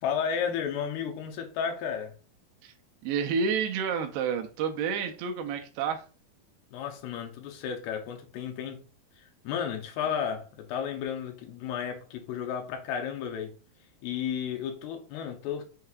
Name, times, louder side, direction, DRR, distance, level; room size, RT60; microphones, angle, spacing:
voice 1, 0.0-2.1 6.7-8.8 9.2-13.5 14.0-15.6, left 7 dB, 80° left, 2.5 m, -33 dB
voice 2, 3.0-6.0, right 6 dB, 85° right, 2.5 m, -29 dB
6.5 x 2.8 x 2.3 m
omnidirectional pair, 4.6 m